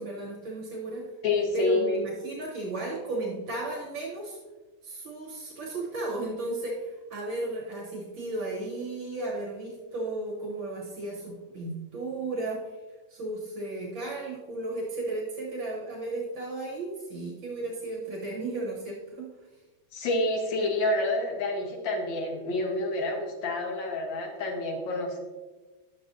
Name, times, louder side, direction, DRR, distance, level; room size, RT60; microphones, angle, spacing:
voice 1, 0.0-1.1 1.5-4.4 4.8-12.6 13.1-19.3, right 2 dB, 75° right, -3 dB, 2.0 m, -34 dB
voice 2, 1.2-1.8 19.9-25.2, left 2 dB, 70° left, 0 dB, 1.9 m, -28 dB
11.5 x 7.6 x 2.6 m, 1.2 s
omnidirectional pair, 2.1 m